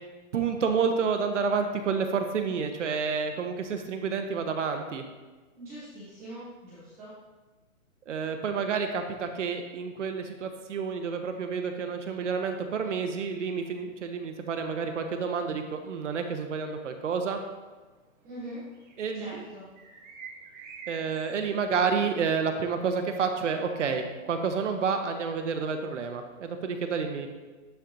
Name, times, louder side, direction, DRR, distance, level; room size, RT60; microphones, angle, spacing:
voice 1, 0.3-5.0 8.1-17.4 19.0-19.4 20.9-27.3, right 5 dB, 60° right, 5 dB, 0.9 m, -29 dB
voice 2, 5.5-7.1 18.2-18.6 19.1-19.6, right 1 dB, 5° right, -11 dB, 0.6 m, -42 dB
sound 1, 13.3-21.4, right 5 dB, 35° right, 1.4 m, -50 dB
11.5 x 4.5 x 2.6 m, 1.3 s
hypercardioid pair, 160°, 41 cm